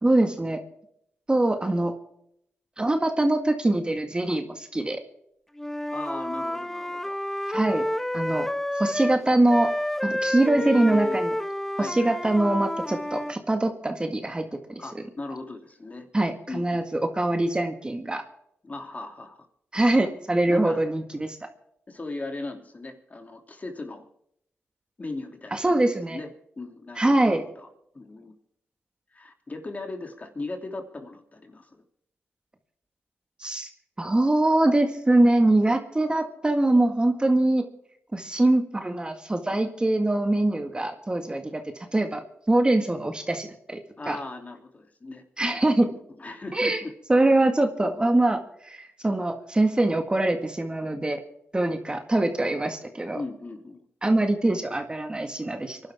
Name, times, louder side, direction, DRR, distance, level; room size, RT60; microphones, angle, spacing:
voice 1, 0.0-0.6 1.3-2.0 2.8-5.0 7.5-7.8 8.1-8.5 8.8-9.7 10.0-11.3 11.8-14.8 16.1-18.2 19.7-21.4 25.5-26.2 27.0-27.4 33.4-33.7 34.0-37.7 38.1-41.6 41.9-43.8 44.1-44.2 45.4-45.9 46.5-46.8 47.1-51.2 51.5-53.2 54.0-55.8, right 2 dB, 20° right, 6 dB, 1.9 m, -23 dB
Wind instrument woodwind instrument, 5.6-9.2 9.5-13.4, left 1 dB, 5° left, 0.7 m, -29 dB
voice 2, 5.9-7.2 10.5-11.2 11.7-12.1 14.8-16.1 16.5-16.8 18.6-19.5 20.5-20.8 21.9-24.1 25.0-25.7 26.1-27.2 27.6-27.7 27.9-28.3 29.1-31.8 44.0-46.9 53.1-53.8, left 2 dB, 35° left, 5 dB, 3.0 m, -38 dB
25.0 x 11.5 x 3.7 m, 0.72 s
cardioid pair, 65°, 5 cm